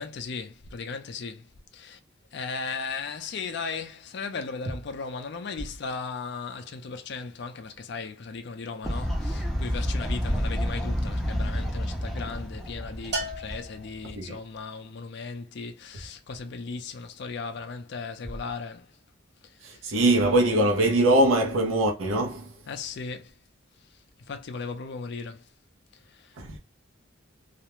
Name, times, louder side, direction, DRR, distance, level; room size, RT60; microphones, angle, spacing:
voice 1, 0.0-1.4 1.7-2.0 2.3-18.9 22.7-23.3 24.3-25.4, left 4 dB, 55° left, 0.4 m, -36 dB
Fowl, 8.8-14.1, equal, ahead, 0.5 m, -29 dB
Bell, 13.1-14.5, right 1 dB, 55° right, 0.8 m, -35 dB
voice 2, 19.6-22.6 26.4-26.6, right 1 dB, 85° right, 0.6 m, -22 dB
2.4 x 2.0 x 2.9 m
head